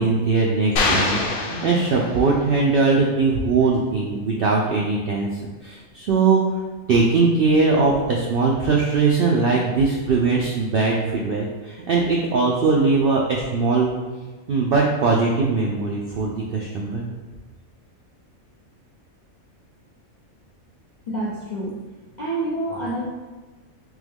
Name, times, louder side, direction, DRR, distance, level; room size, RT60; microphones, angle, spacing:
voice 1, 0.0-5.3 5.6-6.4 6.9-13.9 14.5-17.0, right 4 dB, 70° right, -2 dB, 0.5 m, -20 dB
sound 1, 0.8-2.5, left 3 dB, 85° left, 1.1 m, -24 dB
voice 2, 21.1-21.8 22.1-23.1, right 1 dB, 55° left, -6 dB, 0.5 m, -27 dB
3.6 x 3.0 x 3.5 m, 1.3 s
omnidirectional pair, 1.5 m